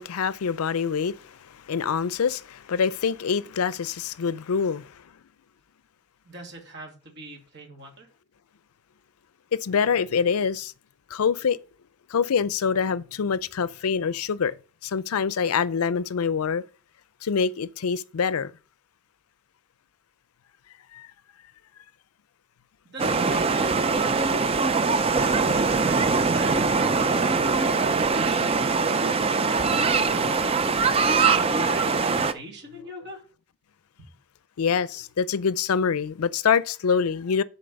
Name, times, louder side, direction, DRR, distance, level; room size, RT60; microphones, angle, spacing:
voice 1, 0.0-5.0 9.5-10.7 11.1-11.6 12.1-14.5 14.8-16.6 17.2-18.5 20.9-21.1 34.6-37.4, left 6 dB, 85° left, 0.5 m, -25 dB
voice 2, 6.2-8.1 22.8-23.8 24.1-24.8 25.2-30.6 31.2-33.2, right 1 dB, 50° right, 2.7 m, -42 dB
sound 1, 23.0-32.3, right 4 dB, 25° right, 0.4 m, -22 dB
10.0 x 4.2 x 5.3 m
head